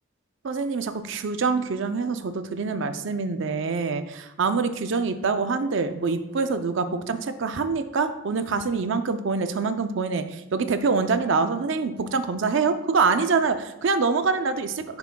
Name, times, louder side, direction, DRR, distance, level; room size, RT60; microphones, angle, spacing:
voice 1, 0.4-15.0, right 4 dB, 55° right, 9 dB, 0.4 m, -25 dB
9.6 x 5.9 x 2.2 m, 0.94 s
head